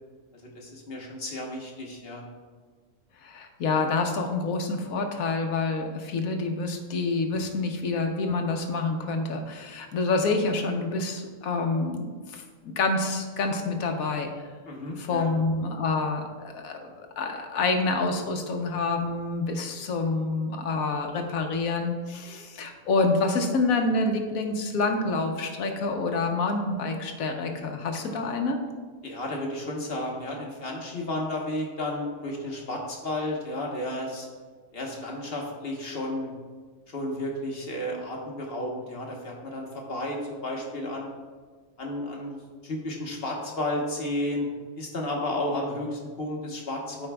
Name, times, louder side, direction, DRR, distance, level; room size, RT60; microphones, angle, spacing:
voice 1, 0.3-2.2 14.6-15.3 28.1-28.2 29.0-34.3 34.7-36.3 36.9-41.1 41.8-44.5 44.8-47.1, left 1 dB, 45° left, 0 dB, 1.3 m, -32 dB
voice 2, 3.2-14.5 15.0-28.6, left 3 dB, 90° left, 4 dB, 1.3 m, -27 dB
12.5 x 5.1 x 2.2 m, 1.5 s
omnidirectional pair, 1.4 m